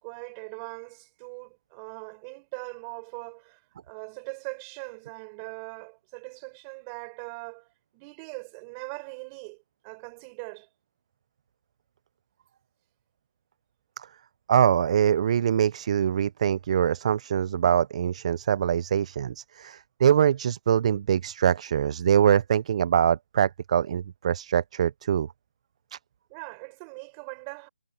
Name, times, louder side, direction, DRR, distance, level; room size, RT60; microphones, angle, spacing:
voice 1, 0.0-10.7 26.3-27.7, right 34 dB, 20° right, 6.5 m, -41 dB
voice 2, 14.5-25.3 25.9-26.0, right 9 dB, 35° right, 0.4 m, -23 dB
hypercardioid pair, 160°, 6 cm